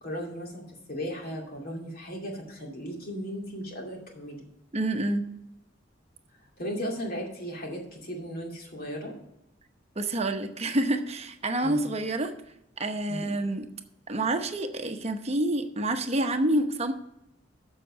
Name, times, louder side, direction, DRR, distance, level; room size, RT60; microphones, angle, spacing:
voice 1, 0.0-4.5 6.6-9.1 11.6-11.8 13.1-13.3, equal, 50° left, 0 dB, 2.4 m, -36 dB
voice 2, 4.7-5.2 10.0-12.3 12.8-13.7 14.1-16.9, right 1 dB, 35° right, 6 dB, 0.9 m, -28 dB
7.5 x 6.6 x 7.1 m, 0.83 s
head